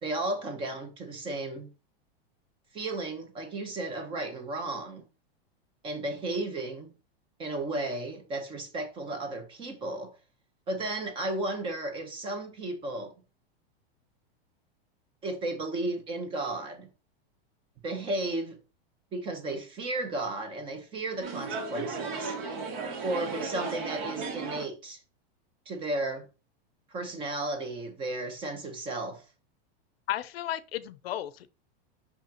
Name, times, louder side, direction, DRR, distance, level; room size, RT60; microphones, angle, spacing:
voice 1, 0.0-1.7 2.7-5.0 5.8-6.9 7.4-10.1 10.7-13.1 15.2-16.9 17.8-18.6 19.1-22.4 23.0-25.0 25.7-26.3 26.9-29.2, right 2 dB, 15° right, 0.9 m, -34 dB
sound 1, 21.2-24.6, right 4 dB, 55° right, 2.4 m, -35 dB
voice 2, 30.1-31.5, left 12 dB, 75° left, 0.7 m, -34 dB
5.8 x 5.6 x 2.9 m
supercardioid pair, 170°, 30 cm